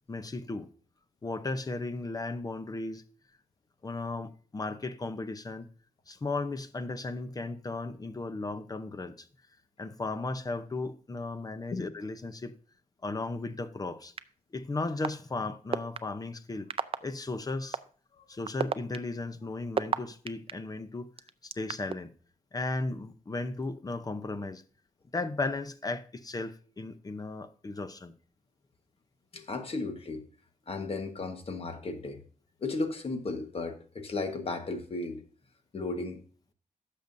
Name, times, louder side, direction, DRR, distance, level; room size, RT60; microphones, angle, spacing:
voice 1, 0.1-0.7 1.2-3.0 3.8-5.7 6.1-9.3 9.8-12.5 13.0-14.1 14.5-16.7 17.0-17.8 18.3-21.1 21.4-22.1 22.5-24.6 25.1-28.1, left 3 dB, 25° left, 0.7 m, -35 dB
sound 1, 14.2-14.3 15.0-15.1 15.7-16.0 16.7-17.0 17.7-17.8 18.4-20.5 21.2-21.9, right 6 dB, 40° right, 0.4 m, -29 dB
voice 2, 29.3-30.2 30.7-32.2 32.6-35.2 35.7-36.2, left 3 dB, 45° left, 1.3 m, -35 dB
16.0 x 6.7 x 2.6 m
wide cardioid pair, 120°, 14 cm